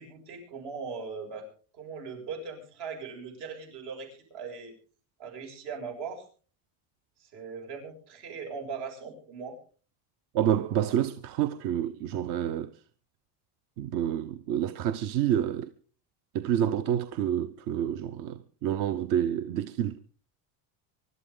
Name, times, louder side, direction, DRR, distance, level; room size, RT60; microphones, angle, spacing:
voice 1, 0.0-1.5 1.7-4.7 5.2-6.2 7.2-9.6, right 5 dB, 70° right, 7.0 m, -39 dB
voice 2, 10.3-12.7 13.8-15.7 16.3-20.0, right 10 dB, 55° right, 0.8 m, -28 dB
24.5 x 12.0 x 3.8 m
cardioid pair, 160°, 42 cm